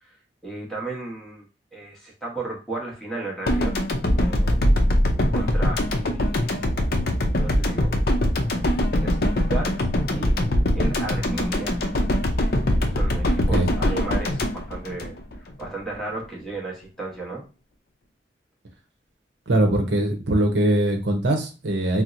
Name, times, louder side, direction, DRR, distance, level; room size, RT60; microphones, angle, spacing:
voice 1, 0.4-1.5 1.7-3.7 4.1-4.6 5.3-6.6 7.4-7.9 8.9-9.8 10.1-10.3 10.7-11.8 12.9-17.4, right 2 dB, 5° left, -3 dB, 0.9 m, -34 dB
sound 1, 3.5-15.7, left 1 dB, 55° left, 0.5 m, -22 dB
voice 2, 19.5-22.0, right 1 dB, 80° right, 4 dB, 0.7 m, -21 dB
4.3 x 2.0 x 2.5 m, 0.31 s
head